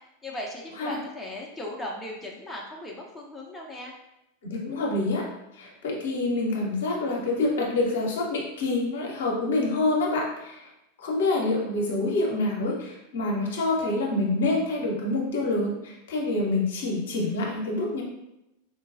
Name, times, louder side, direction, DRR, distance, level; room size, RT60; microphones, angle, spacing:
voice 1, 0.2-3.9, left 1 dB, 10° left, -2 dB, 0.5 m, -37 dB
voice 2, 4.4-5.3 5.5-10.7 11.0-18.0, left 2 dB, 60° left, -2 dB, 0.7 m, -27 dB
3.9 x 2.2 x 2.4 m, 0.89 s
figure-of-eight pair, 90°, 0 cm